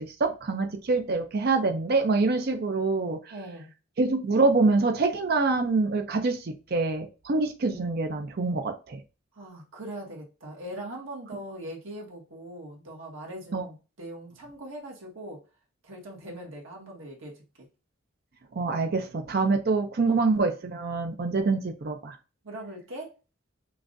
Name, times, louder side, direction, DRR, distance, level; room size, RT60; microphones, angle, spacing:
voice 1, 0.0-3.2 4.0-9.0 13.5-13.6 18.6-22.2, right 3 dB, 50° right, 0.5 m, -25 dB
voice 2, 3.3-3.7 9.3-15.4 15.8-17.7 20.1-20.2 22.4-23.1, right 1 dB, 80° right, 1.5 m, -41 dB
5.8 x 2.5 x 2.5 m
head